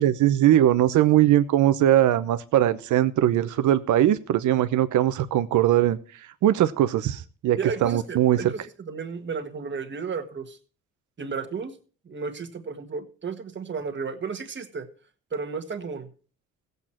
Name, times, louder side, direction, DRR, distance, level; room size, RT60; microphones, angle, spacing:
voice 1, 0.0-6.0 6.4-8.4, right 12 dB, 80° right, 12 dB, 0.9 m, -20 dB
voice 2, 7.6-10.6 11.2-11.8 12.1-14.9 15.3-16.1, right 5 dB, 40° right, 7 dB, 1.7 m, -33 dB
15.0 x 8.2 x 4.5 m, 0.40 s
cardioid pair, 90°, 30 cm